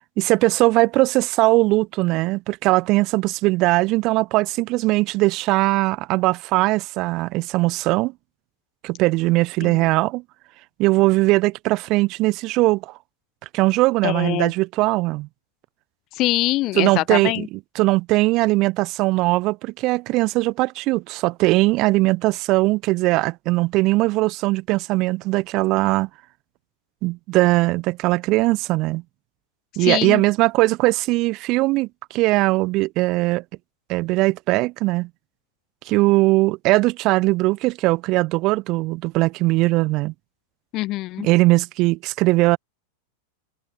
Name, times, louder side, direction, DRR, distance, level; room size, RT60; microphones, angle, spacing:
voice 1, 0.2-8.1 8.8-10.2 10.8-12.9 13.5-15.3 16.8-17.5 17.7-26.1 27.0-29.0 29.8-33.4 33.9-35.1 35.9-40.1 41.2-42.6, right 21 dB, 40° right, 1.1 m, -20 dB
voice 2, 14.0-14.5 16.1-17.5 29.8-30.2 40.7-41.3, left 18 dB, 40° left, 1.1 m, -24 dB
figure-of-eight pair, 90°, 0 cm